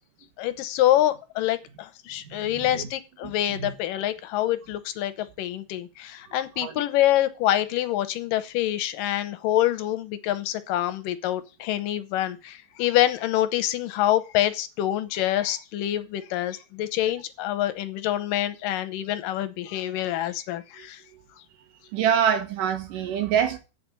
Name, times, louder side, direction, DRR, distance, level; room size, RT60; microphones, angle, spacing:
voice 1, 0.4-21.0, left 13 dB, 90° left, 2.5 m, -26 dB
voice 2, 2.2-2.9 3.2-3.7 6.3-6.8 20.8-20.9 21.1-21.2 21.9-23.6, right 8 dB, 75° right, 3.1 m, -26 dB
8.6 x 6.0 x 8.2 m
omnidirectional pair, 3.8 m